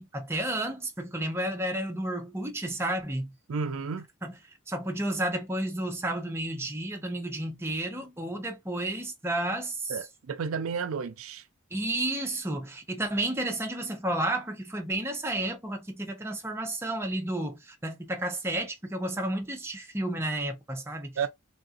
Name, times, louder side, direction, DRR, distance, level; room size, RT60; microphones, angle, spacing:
voice 1, 0.0-3.3 4.2-4.3 4.7-10.0 11.7-21.2, right 1 dB, 10° right, 0.7 m, -31 dB
voice 2, 3.5-4.1 9.9-11.4 21.2-21.3, right 5 dB, 85° right, 0.5 m, -32 dB
3.5 x 2.5 x 2.4 m
head